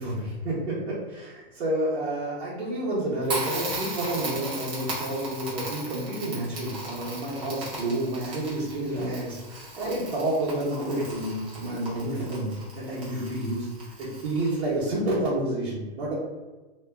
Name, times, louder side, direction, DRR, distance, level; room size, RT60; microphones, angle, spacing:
voice 1, 0.0-13.7 14.0-16.2, right 1 dB, 75° right, -9 dB, 1.0 m, -29 dB
Crackle, 3.2-14.8, right 1 dB, 30° right, 0.8 m, -37 dB
2.4 x 2.2 x 2.3 m, 1.2 s
hypercardioid pair, 170°, 32 cm